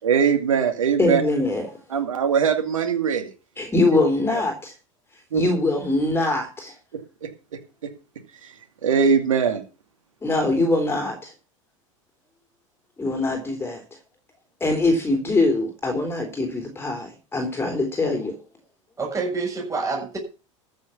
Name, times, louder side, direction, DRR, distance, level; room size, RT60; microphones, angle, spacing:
voice 1, 0.0-1.2 1.9-3.3 4.3-4.4 5.3-5.4 7.2-7.3 8.4-8.5 8.8-9.6, right 6 dB, 85° right, 5 dB, 2.4 m, -21 dB
voice 2, 1.0-1.7 3.6-4.7 5.3-6.8 10.2-11.3 13.0-13.8 14.6-18.3, left 2 dB, 15° left, 3 dB, 3.8 m, -23 dB
voice 3, 19.0-20.2, right 4 dB, 20° right, -1 dB, 6.7 m, -27 dB
14.0 x 6.7 x 7.1 m, 0.34 s
hypercardioid pair, 90°, 17 cm